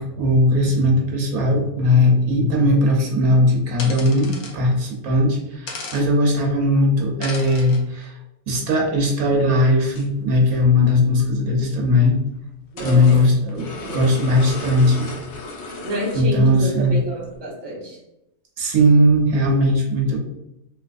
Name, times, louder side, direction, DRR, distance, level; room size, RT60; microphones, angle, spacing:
voice 1, 0.0-8.2 8.5-12.2 12.8-15.1 16.1-17.0 18.6-20.2, left 1 dB, 75° right, 0 dB, 1.2 m, -18 dB
sound 1, 3.8-4.5 5.7-6.0 7.2-7.8, left 4 dB, 80° left, 1.2 m, -34 dB
sound 2, 9.9-10.1 10.4-10.5 11.7-11.9 12.8-16.4 16.8-16.9 17.3-17.4, left 2 dB, 55° left, 0.8 m, -35 dB
voice 2, 12.7-14.1 15.8-18.0, equal, 20° right, -4 dB, 0.9 m, -29 dB
3.2 x 2.8 x 2.4 m, 0.87 s
omnidirectional pair, 1.5 m